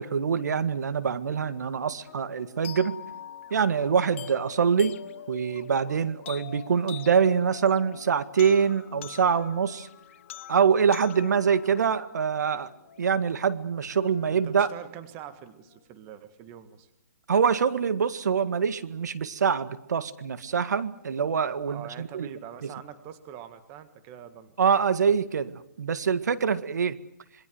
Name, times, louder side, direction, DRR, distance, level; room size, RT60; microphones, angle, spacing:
voice 1, 0.0-3.0 3.5-5.0 5.3-9.9 10.5-12.7 13.0-14.7 17.3-22.3 22.6-22.7 24.6-27.0, right 6 dB, 70° right, 14 dB, 1.9 m, -25 dB
sound 1, 1.3-15.9, left 6 dB, 65° left, 6.7 m, -55 dB
sound 2, 2.6-12.7, left 11 dB, 45° left, 1.1 m, -44 dB
voice 2, 14.3-16.9 21.6-24.5, right 10 dB, 25° right, 11 dB, 1.7 m, -44 dB
27.5 x 21.5 x 7.9 m, 0.76 s
hypercardioid pair, 155°, 10 cm